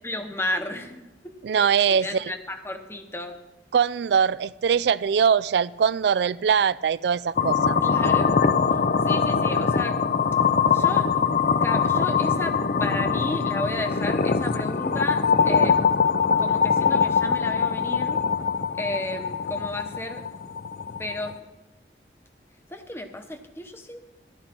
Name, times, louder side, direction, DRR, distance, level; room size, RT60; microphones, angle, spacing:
voice 1, 0.0-3.4 7.8-8.3 8.7-10.0 10.7-11.2 11.6-15.8 16.4-18.2 18.8-20.2 21.0-21.4 22.7-24.0, left 1 dB, 15° left, 6 dB, 0.9 m, -33 dB
voice 2, 1.4-2.2 3.7-7.8, right 7 dB, 70° right, 19 dB, 0.3 m, -22 dB
sound 1, 7.4-21.4, left 6 dB, 50° left, 0.5 m, -22 dB
13.5 x 12.0 x 4.4 m, 1.0 s
head